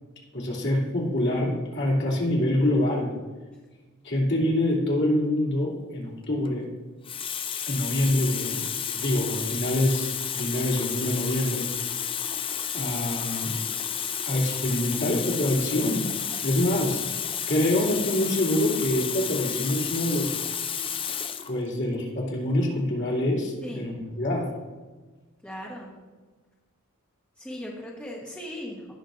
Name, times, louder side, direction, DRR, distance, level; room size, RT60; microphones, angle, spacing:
voice 1, 0.3-3.1 4.0-6.7 7.7-8.6 8.9-11.7 12.7-13.5 14.2-16.1 16.4-17.0 17.5-20.4 21.5-24.4, left 1 dB, 60° left, -4 dB, 2.8 m, -25 dB
Water tap faucet, 6.2-6.5 7.0-21.5 22.4-22.6, left 8 dB, 25° left, 0.4 m, -31 dB
voice 2, 25.4-25.9 27.4-28.9, left 1 dB, 5° left, -4 dB, 1.2 m, -38 dB
17.0 x 6.2 x 2.6 m, 1.3 s
head